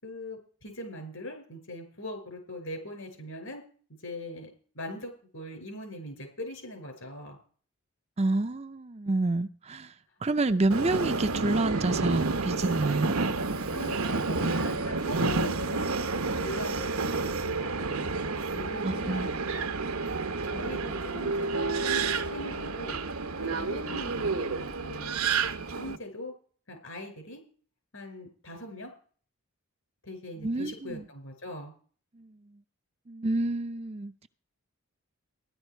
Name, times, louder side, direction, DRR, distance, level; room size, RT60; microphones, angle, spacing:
voice 1, 0.0-3.6 4.0-7.4 13.7-15.9 16.1-16.9 17.2-18.1 18.5-19.3 20.4-22.0 22.3-23.0 23.4-25.2 25.8-26.3 26.7-27.4 27.9-28.9 30.0-31.7, left 1 dB, 70° left, 5.8 m, -41 dB
voice 2, 8.2-9.9 10.2-13.2 18.8-19.3 30.4-31.0 32.2-32.4 33.1-34.3, right 2 dB, 30° right, 0.5 m, -28 dB
Subway metro underground, 10.7-26.0, right 4 dB, 80° right, 1.0 m, -30 dB
15.5 x 11.5 x 4.5 m
head